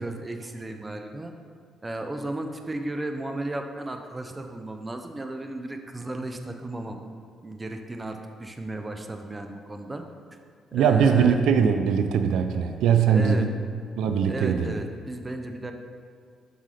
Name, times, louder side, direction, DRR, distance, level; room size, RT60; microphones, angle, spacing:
voice 1, 0.0-1.3 1.8-7.0 7.4-10.0 10.7-11.5 13.1-13.5 14.3-15.7, right 2 dB, 20° right, 5 dB, 0.6 m, -34 dB
voice 2, 10.7-13.5 14.0-14.8, right 7 dB, 85° right, 7 dB, 0.4 m, -21 dB
7.5 x 5.5 x 3.3 m, 2.2 s
cardioid pair, 90°, 0 cm